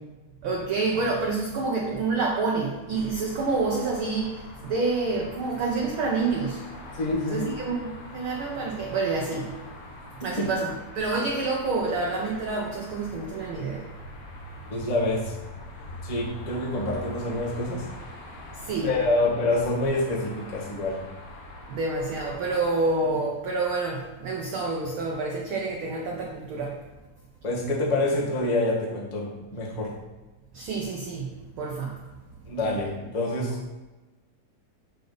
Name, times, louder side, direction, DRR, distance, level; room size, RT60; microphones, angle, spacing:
voice 1, 0.4-6.6 7.3-9.6 10.2-13.8 18.6-18.9 21.7-26.8 30.5-31.3 31.6-31.9, right 3 dB, 75° right, 0 dB, 1.2 m, -28 dB
sound 1, 2.9-22.8, left 1 dB, 75° left, 2.5 m, -43 dB
voice 2, 7.0-7.5 14.7-15.3 16.0-17.8 18.8-21.0 27.4-29.9 32.5-33.6, left 2 dB, 30° left, -4 dB, 0.7 m, -26 dB
6.9 x 6.5 x 3.9 m, 1.1 s
omnidirectional pair, 3.5 m